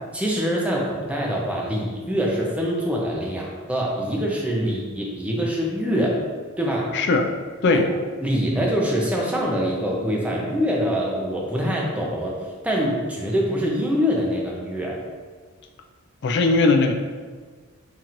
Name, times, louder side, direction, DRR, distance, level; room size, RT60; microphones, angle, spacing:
voice 1, 0.1-6.2 6.6-6.9 7.7-7.8 8.2-12.4 12.6-15.0, equal, 5° right, -3 dB, 0.6 m, -24 dB
voice 2, 6.9-7.3 7.6-7.9 16.2-16.9, left 3 dB, 55° left, 5 dB, 0.4 m, -18 dB
5.7 x 2.9 x 2.5 m, 1.5 s
head